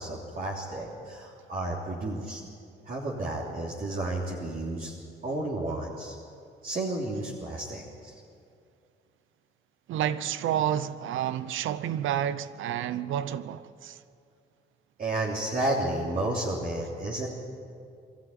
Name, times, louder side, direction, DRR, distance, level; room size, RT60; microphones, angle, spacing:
voice 1, 0.0-2.4 2.8-4.9 5.2-6.1 6.6-8.2 15.0-17.3, right 2 dB, 45° right, 3.2 m, -32 dB
voice 2, 9.9-14.0, right 10 dB, 80° right, 0.8 m, -30 dB
23.5 x 13.5 x 9.2 m
cardioid pair, 90°, 20 cm